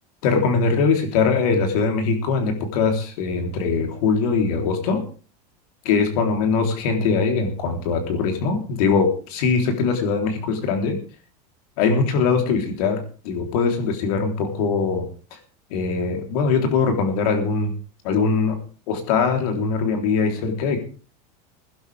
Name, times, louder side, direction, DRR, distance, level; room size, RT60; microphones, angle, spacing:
voice 1, 0.2-5.0 5.9-11.0 11.8-15.0 15.7-17.7 18.0-18.6 18.9-20.8, left 5 dB, 65° left, 5 dB, 3.7 m, -21 dB
21.5 x 11.5 x 3.5 m, 0.37 s
supercardioid pair, 160°, 21 cm